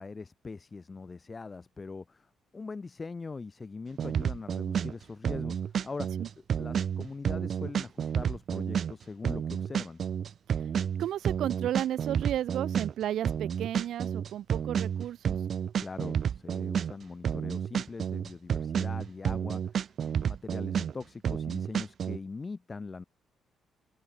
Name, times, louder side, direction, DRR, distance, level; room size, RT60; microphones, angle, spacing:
voice 1, 0.0-10.0 15.8-23.0, left 4 dB, 30° left, 7.5 m, -42 dB
sound 1, 4.0-22.2, right 8 dB, 55° right, 6.2 m, -30 dB
voice 2, 11.0-15.4, right 11 dB, 75° right, 2.1 m, -33 dB
open air
cardioid pair, 90°, 0 cm